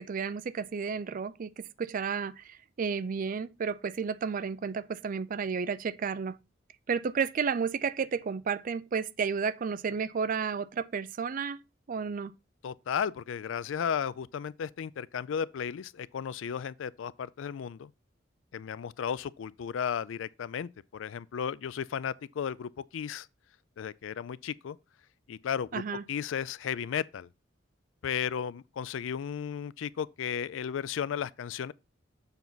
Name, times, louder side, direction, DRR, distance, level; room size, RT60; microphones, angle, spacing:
voice 1, 0.0-6.4 6.9-11.6 11.9-12.3 25.7-26.0, right 6 dB, 45° right, 0.4 m, -32 dB
voice 2, 12.6-17.9 18.5-23.3 23.8-24.8 25.3-25.8 26.1-27.3 28.0-31.7, left 7 dB, 85° left, 0.4 m, -34 dB
7.1 x 5.7 x 4.0 m
head